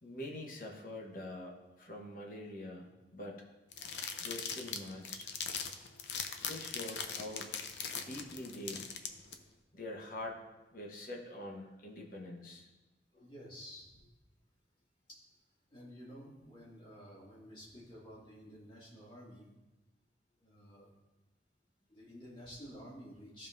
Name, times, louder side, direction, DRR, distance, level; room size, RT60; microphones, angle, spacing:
voice 1, 0.0-3.4 4.2-5.3 6.4-7.6 7.9-8.8 9.7-10.4 10.7-12.7 13.1-13.3, left 1 dB, 50° left, 0 dB, 1.2 m, -45 dB
sound 1, 3.7-9.3, left 6 dB, 85° left, 0.7 m, -40 dB
voice 2, 13.2-14.0 15.7-19.5 20.4-20.9 21.9-23.5, equal, 30° left, -6 dB, 2.4 m, -51 dB
14.5 x 5.5 x 2.7 m, 1.1 s
head